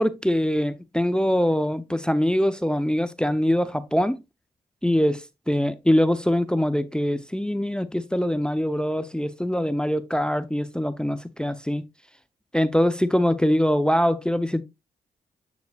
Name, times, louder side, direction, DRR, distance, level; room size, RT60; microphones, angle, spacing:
voice 1, 0.0-4.2 4.8-11.8 12.5-14.6, equal, 5° left, 0.7 m, -23 dB
7.9 x 7.1 x 2.4 m
supercardioid pair, 40°, 18 cm